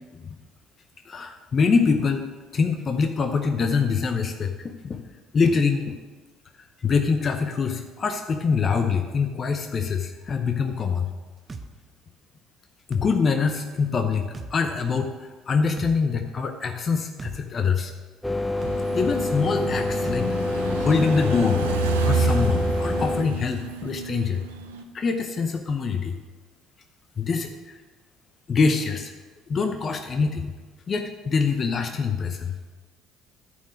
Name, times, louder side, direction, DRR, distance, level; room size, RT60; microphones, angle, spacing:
voice 1, 1.1-2.3 2.5-5.0 5.3-5.9 6.8-11.1 12.9-17.9 18.9-21.8 22.0-24.4 24.9-26.1 27.2-27.8 28.5-29.1 29.5-30.5 30.9-32.5, left 5 dB, 40° left, 6 dB, 0.7 m, -24 dB
sound 1, 11.5-11.7 12.9-13.1 14.3-14.5 15.8-16.0 17.2-17.4 18.6-18.8 20.0-20.2, right 3 dB, 30° right, 0.8 m, -36 dB
sound 2, 18.2-23.2, left 2 dB, 15° left, 0.9 m, -26 dB
sound 3, 18.6-24.8, right 4 dB, 90° right, 0.6 m, -29 dB
11.5 x 4.5 x 6.3 m, 1.3 s
hypercardioid pair, 60°, 0 cm